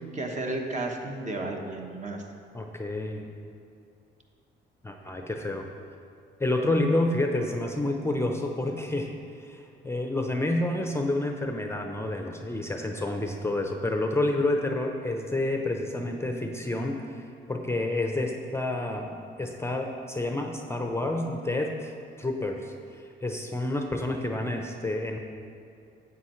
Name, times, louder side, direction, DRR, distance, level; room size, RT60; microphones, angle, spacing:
voice 1, 0.1-2.2, right 2 dB, 35° right, 1 dB, 1.1 m, -33 dB
voice 2, 2.5-3.3 4.8-5.7 6.4-9.1 9.4-21.9 22.2-25.2, left 2 dB, 15° left, 3 dB, 0.6 m, -29 dB
9.8 x 8.2 x 3.1 m, 2.4 s
cardioid pair, 90°, 20 cm